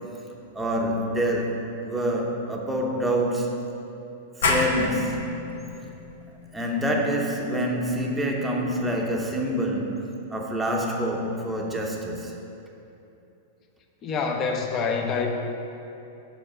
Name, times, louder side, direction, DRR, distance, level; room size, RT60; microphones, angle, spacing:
voice 1, 0.5-3.5 4.4-5.4 6.5-10.0 10.3-12.3, equal, 10° right, -1 dB, 0.8 m, -26 dB
sound 1, 4.4-9.8, left 3 dB, 85° left, 0.8 m, -31 dB
voice 2, 14.0-15.3, left 5 dB, 30° left, 3 dB, 0.7 m, -26 dB
5.1 x 4.9 x 6.1 m, 2.8 s
supercardioid pair, 140°, 0 cm